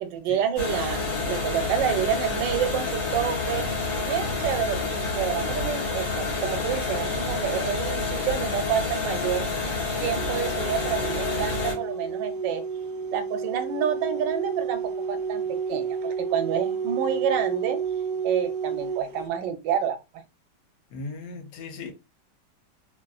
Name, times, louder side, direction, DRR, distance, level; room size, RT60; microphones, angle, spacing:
voice 1, 0.0-3.7 4.0-9.4 10.0-12.6 13.1-15.4 15.7-17.8 18.2-20.0, right 8 dB, 90° right, 1.3 m, -28 dB
sound 1, 0.6-11.7, left 3 dB, 50° left, 1.4 m, -28 dB
sound 2, 10.2-19.3, right 6 dB, 65° right, 1.1 m, -31 dB
voice 2, 20.9-21.9, left 3 dB, 75° left, 1.2 m, -37 dB
3.1 x 2.4 x 2.3 m
omnidirectional pair, 1.9 m